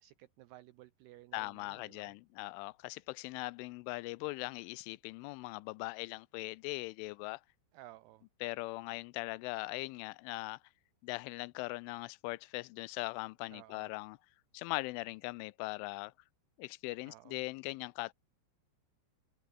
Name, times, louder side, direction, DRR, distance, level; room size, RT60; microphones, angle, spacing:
voice 1, 0.0-2.2 7.7-8.3 13.5-13.9 17.0-17.4, right 15 dB, 90° right, 2.3 m, -56 dB
voice 2, 1.3-7.4 8.4-10.6 11.0-14.2 14.5-16.1 16.6-18.1, left 23 dB, 85° left, 3.0 m, -40 dB
open air
omnidirectional pair, 5.6 m